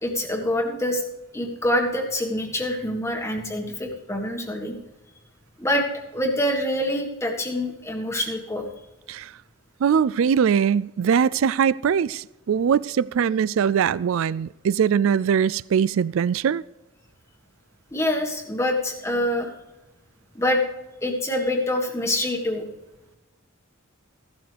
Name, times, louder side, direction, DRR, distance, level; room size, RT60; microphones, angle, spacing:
voice 1, 0.0-1.0 1.3-4.8 5.6-5.8 6.1-8.7 17.9-19.5 20.3-20.6 21.0-22.6, left 1 dB, 15° left, 2 dB, 1.6 m, -25 dB
voice 2, 9.8-16.6, right 7 dB, 65° right, 21 dB, 0.3 m, -21 dB
15.5 x 12.0 x 3.4 m, 1.0 s
head